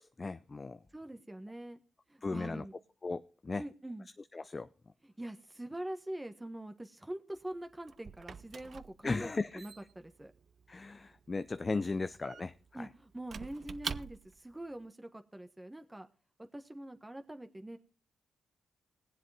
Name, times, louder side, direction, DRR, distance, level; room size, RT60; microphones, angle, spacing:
voice 1, 0.0-0.8 2.2-2.7 3.0-3.6 4.3-4.7 9.0-9.6 10.7-12.9, left 3 dB, 35° left, 12 dB, 0.6 m, -36 dB
voice 2, 0.9-1.8 2.1-2.7 3.6-4.1 5.2-10.3 12.7-16.1 16.5-17.8, right 1 dB, 15° right, 7 dB, 1.4 m, -44 dB
Squeak / Wood, 7.4-14.5, right 6 dB, 55° right, 0.5 m, -47 dB
20.0 x 7.5 x 3.5 m, 0.35 s
supercardioid pair, 60°, 0 cm